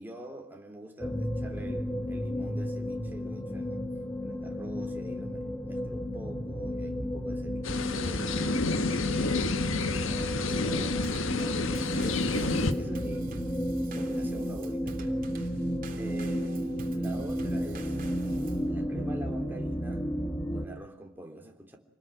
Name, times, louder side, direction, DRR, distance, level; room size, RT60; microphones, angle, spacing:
voice 1, 0.0-3.9 4.2-9.4 9.7-11.6 11.9-15.5 15.9-16.6 16.9-18.0 18.7-20.1 20.5-21.8, right 1 dB, 10° right, 3.4 m, -45 dB
sound 1, 1.0-20.7, equal, 15° left, 1.8 m, -33 dB
sound 2, 7.6-12.7, left 3 dB, 75° left, 1.6 m, -29 dB
Drum kit / Snare drum / Bass drum, 11.0-18.7, right 1 dB, 45° right, 3.2 m, -45 dB
27.5 x 20.0 x 9.3 m
head